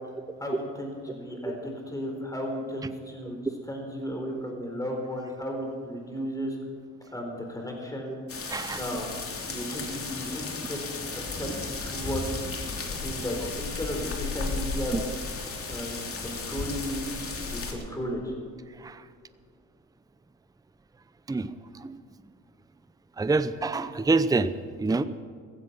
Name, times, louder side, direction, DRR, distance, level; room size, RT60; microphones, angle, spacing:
voice 1, 0.4-3.4 3.7-6.6 7.1-8.2 8.7-9.1 9.4-10.8 11.1-11.5 11.8-12.4 13.0-14.9 15.7-17.0 17.5-18.3, equal, 10° left, 1 dB, 4.3 m, -34 dB
sound 1, 8.3-17.7, left 3 dB, 50° left, 2.9 m, -34 dB
voice 2, 8.5-8.9 14.9-15.0 18.7-19.1 21.3-22.1 23.2-25.1, right 3 dB, 10° right, 13 dB, 0.6 m, -27 dB
15.5 x 15.0 x 5.7 m, 2.2 s
cardioid pair, 90°, 30 cm